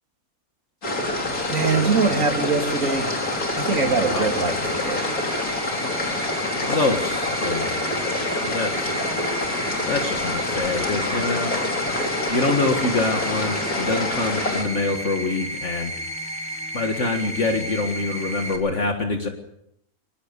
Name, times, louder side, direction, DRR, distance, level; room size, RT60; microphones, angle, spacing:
sound 1, 0.8-14.6, left 2 dB, 80° left, 4.4 m, -26 dB
sound 2, 1.3-18.6, equal, 5° right, 4.2 m, -33 dB
voice 1, 1.5-3.1 3.6-5.0 6.7-6.8, right 4 dB, 65° right, 4 dB, 3.0 m, -23 dB
voice 2, 4.1-4.6 6.6-7.8 8.4-9.0 9.9-11.5 12.3-15.9 16.7-19.3, left 3 dB, 55° left, 4 dB, 2.1 m, -25 dB
23.0 x 19.5 x 6.9 m, 0.77 s
omnidirectional pair, 1.5 m